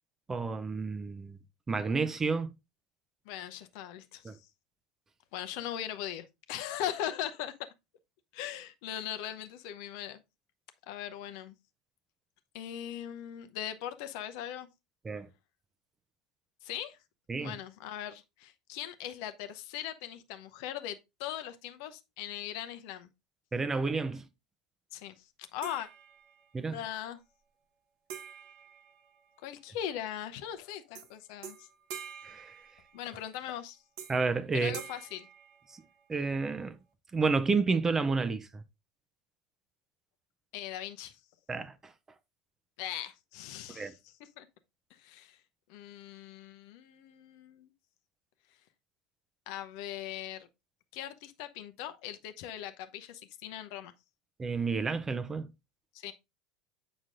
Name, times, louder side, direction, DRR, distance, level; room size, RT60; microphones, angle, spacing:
voice 1, 0.3-1.4 1.7-2.5 4.2-4.4 15.0-15.3 17.3-17.5 23.5-24.2 26.5-26.8 32.2-32.5 34.1-34.8 36.1-36.8 37.1-38.6 41.5-41.7 43.7-43.9 54.4-55.5, right 4 dB, 20° right, 0.6 m, -30 dB
voice 2, 3.3-4.4 5.3-7.5 8.3-10.2 10.9-11.6 12.5-14.7 16.6-17.0 17.4-23.1 24.9-25.9 26.7-27.2 29.4-31.7 32.9-33.8 34.5-35.3 40.5-41.2 42.8-44.5 44.9-45.4 45.7-47.7 49.5-50.5 50.9-53.9 55.9-56.1, left 11 dB, 60° left, 0.7 m, -40 dB
sound 1, 25.6-26.6 28.1-29.7 30.9-31.1 31.4-33.3 34.0-34.4 34.7-36.2, right 8 dB, 60° right, 1.1 m, -47 dB
7.4 x 5.9 x 2.5 m
figure-of-eight pair, 75°, 2 cm